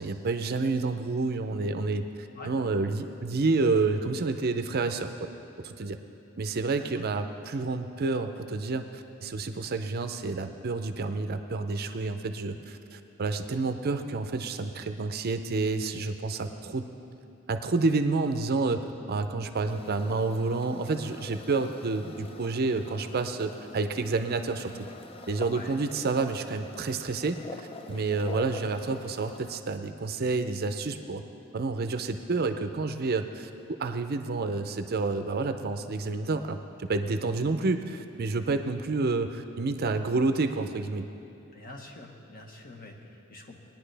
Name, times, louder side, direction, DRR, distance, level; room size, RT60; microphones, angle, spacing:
voice 1, 0.0-5.3 5.6-6.0 6.4-16.9 17.5-24.7 25.3-27.4 27.9-31.2 31.5-33.5 33.8-41.1, right 3 dB, 50° right, 8 dB, 0.5 m, -29 dB
sound 1, 19.6-29.6, left 3 dB, 25° left, 0.5 m, -46 dB
voice 2, 41.5-43.6, left 2 dB, 45° left, 1 dB, 1.2 m, -45 dB
19.0 x 10.5 x 3.4 m, 2.9 s
head